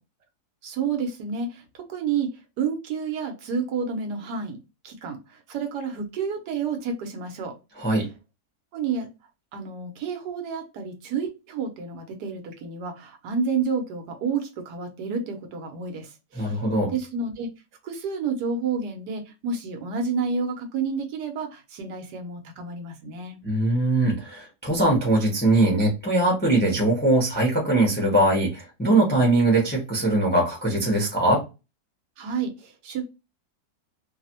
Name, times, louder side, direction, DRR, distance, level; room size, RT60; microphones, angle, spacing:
voice 1, 0.6-2.3 2.6-4.6 4.8-7.9 8.7-9.1 9.5-16.6 16.9-17.5 17.8-23.4 32.2-33.0, right 5 dB, 85° right, 4 dB, 1.3 m, -30 dB
voice 2, 7.8-8.1 16.4-16.9 23.4-31.4, right 2 dB, 10° left, -2 dB, 0.7 m, -21 dB
3.2 x 2.0 x 2.8 m, 0.27 s
omnidirectional pair, 1.8 m